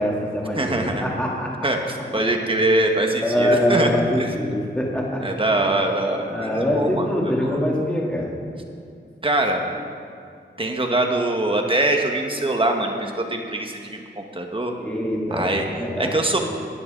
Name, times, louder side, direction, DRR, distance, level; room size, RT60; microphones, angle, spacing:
voice 1, 0.0-1.5 3.2-5.2 6.2-8.3 14.8-15.5 15.8-16.1, left 1 dB, 5° left, -4 dB, 3.3 m, -23 dB
voice 2, 0.6-1.0 1.6-3.9 4.2-4.3 5.2-7.1 7.4-7.6 9.2-9.6 10.6-14.7 15.3-15.7 16.0-16.4, right 2 dB, 25° right, 2 dB, 1.7 m, -23 dB
16.5 x 10.0 x 4.1 m, 2.4 s
cardioid pair, 55°, 20 cm